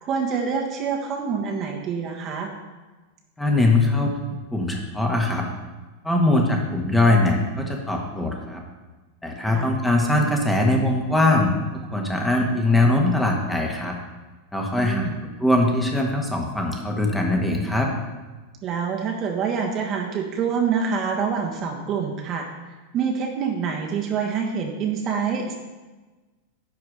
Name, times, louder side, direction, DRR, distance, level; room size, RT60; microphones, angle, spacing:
voice 1, 0.0-2.5 9.5-9.7 14.8-15.2 18.6-22.5 22.9-25.5, right 6 dB, 30° right, 0 dB, 1.3 m, -26 dB
voice 2, 3.4-5.4 6.0-8.6 9.2-14.0 14.5-17.9, left 2 dB, 5° left, 1 dB, 1.5 m, -21 dB
11.0 x 4.7 x 6.3 m, 1.2 s
figure-of-eight pair, 90°, 0 cm